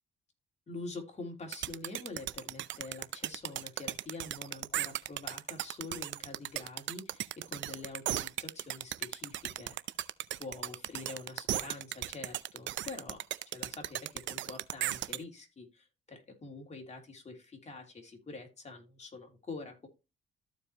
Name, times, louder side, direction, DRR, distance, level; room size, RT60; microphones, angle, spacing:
voice 1, 0.7-9.8 10.4-13.2 13.5-19.9, left 3 dB, 35° left, 3 dB, 3.1 m, -46 dB
sound 1, 1.5-15.2, right 13 dB, 70° right, 0.5 m, -36 dB
14.0 x 4.9 x 2.9 m, 0.27 s
cardioid pair, 90°, 20 cm